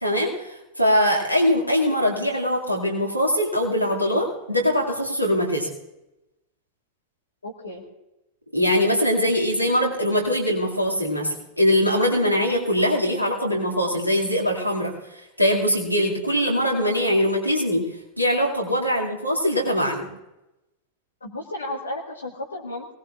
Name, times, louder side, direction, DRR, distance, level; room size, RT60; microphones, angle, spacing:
voice 1, 0.0-5.7 8.5-14.9 15.4-17.9 18.2-20.1, equal, 90° right, -2 dB, 2.3 m, -22 dB
voice 2, 7.4-7.8 18.9-19.0 21.2-22.9, left 1 dB, 75° left, 1 dB, 1.6 m, -33 dB
21.0 x 18.0 x 2.5 m, 0.94 s
figure-of-eight pair, 90°, 0 cm